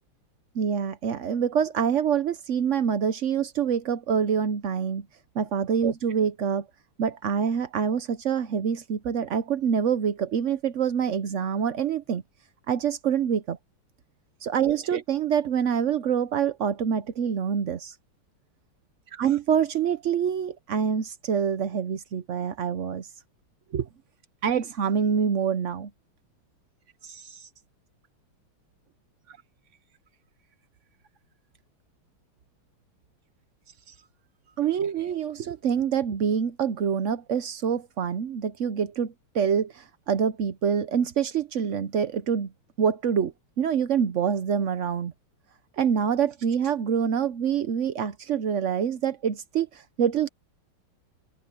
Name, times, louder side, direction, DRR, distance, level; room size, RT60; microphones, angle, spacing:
voice 1, 0.5-5.1 5.3-6.7 7.0-12.2 12.7-13.6 14.4-17.9 19.1-23.1 23.7-23.9 24.4-25.9 27.0-27.5 34.6-42.5 42.8-45.1 45.8-50.3, right 7 dB, 85° right, 0.6 m, -26 dB
open air
omnidirectional pair, 2.4 m